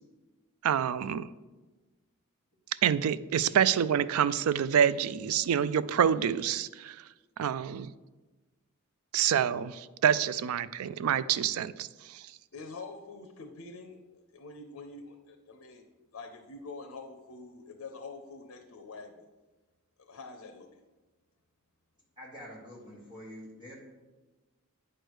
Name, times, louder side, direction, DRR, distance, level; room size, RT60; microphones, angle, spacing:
voice 1, 0.6-1.3 2.8-7.0 7.4-7.9 9.1-11.9, right 8 dB, 85° right, 16 dB, 0.3 m, -27 dB
voice 2, 12.5-14.0 14.3-15.8 16.1-19.3 20.0-20.7, left 3 dB, 80° left, 4 dB, 0.7 m, -45 dB
voice 3, 22.2-23.7, equal, 20° right, -4 dB, 1.7 m, -46 dB
8.9 x 3.3 x 6.2 m, 1.2 s
head